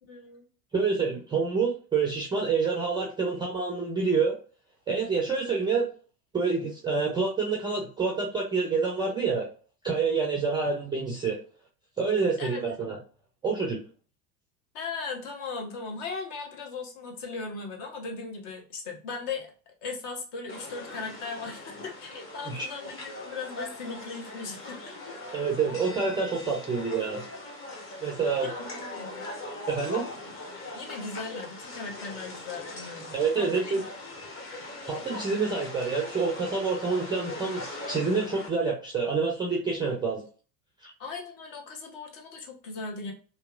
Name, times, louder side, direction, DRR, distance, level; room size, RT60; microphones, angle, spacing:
voice 1, 0.0-0.5 12.4-12.9 14.7-19.5 19.8-24.9 28.3-29.3 30.7-33.8 41.0-43.1, left 4 dB, 50° left, 1 dB, 1.1 m, -38 dB
voice 2, 0.7-4.3 4.9-5.9 6.3-9.5 9.8-11.4 12.0-13.0 13.4-13.8 22.4-22.7 25.3-27.2 28.0-28.5 29.7-30.1 33.1-33.8 34.8-40.2 40.8-40.9, right 4 dB, 10° right, -1 dB, 0.3 m, -27 dB
sound 1, 20.5-38.5, left 2 dB, 25° left, 1.0 m, -40 dB
2.8 x 2.4 x 2.3 m, 0.38 s
hypercardioid pair, 80°, 49 cm